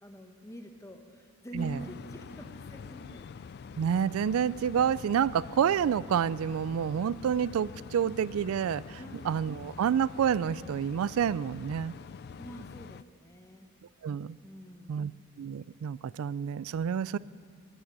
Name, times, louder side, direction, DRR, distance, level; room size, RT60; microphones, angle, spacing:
voice 1, 0.0-3.2 9.0-9.3 12.4-13.7 14.4-15.3, equal, 15° left, 4 dB, 1.1 m, -46 dB
sound 1, 1.6-13.0, left 6 dB, 50° left, 0.3 m, -46 dB
voice 2, 3.8-9.0 9.3-11.9 14.0-14.4 14.9-15.1 15.4-17.2, right 8 dB, 80° right, 20 dB, 0.3 m, -28 dB
14.5 x 9.8 x 10.0 m, 2.2 s
head